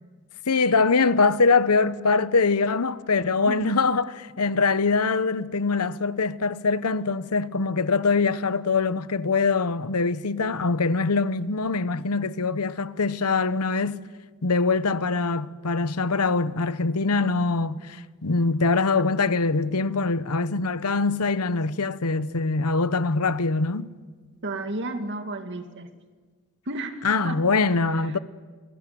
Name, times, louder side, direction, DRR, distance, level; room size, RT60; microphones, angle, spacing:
voice 1, 0.5-14.0 14.4-23.9 27.0-28.2, left 4 dB, 85° left, 1.0 m, -23 dB
voice 2, 3.4-3.8 24.4-25.9 26.7-27.4 27.7-27.8 28.1-28.2, right 2 dB, 55° right, 2.2 m, -33 dB
28.0 x 21.0 x 9.4 m
head